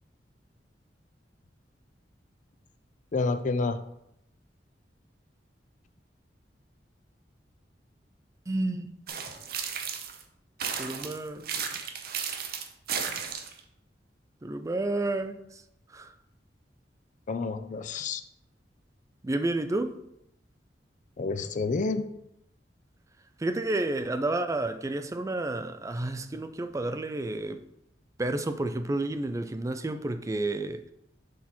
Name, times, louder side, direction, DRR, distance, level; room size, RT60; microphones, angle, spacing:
voice 1, 3.1-3.8 17.3-18.2 21.2-22.1, left 3 dB, 45° left, 0.4 m, -29 dB
voice 2, 8.5-9.0 10.8-11.5 14.4-15.6 15.9-16.1 19.2-20.0 23.4-27.6 28.2-30.8, right 2 dB, 20° right, 0.4 m, -30 dB
sound 1, 9.1-10.2 10.6-13.6, right 7 dB, 60° right, 0.7 m, -34 dB
6.3 x 4.1 x 4.3 m
head